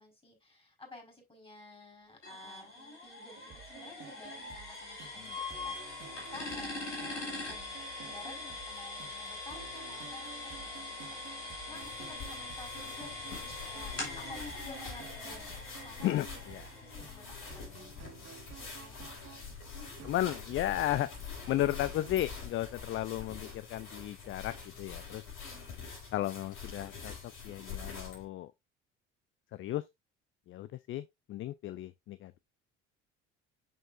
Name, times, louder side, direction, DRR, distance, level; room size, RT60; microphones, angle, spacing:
voice 1, 0.0-5.3 5.6-17.2 17.5-17.8 18.2-19.0 19.8-20.0 25.4-25.7, left 3 dB, 15° left, 4.4 m, -53 dB
sound 1, 2.2-17.9, left 2 dB, 85° left, 2.4 m, -42 dB
sound 2, 3.4-22.1, right 8 dB, 45° right, 2.1 m, -52 dB
sound 3, 11.7-28.2, left 6 dB, 60° left, 4.6 m, -46 dB
voice 2, 16.0-16.7 17.6-17.9 20.0-21.1 21.5-25.2 26.1-28.5 29.5-29.8 30.5-32.4, left 13 dB, 35° left, 0.5 m, -34 dB
6.5 x 6.4 x 2.5 m
figure-of-eight pair, 55°, 35 cm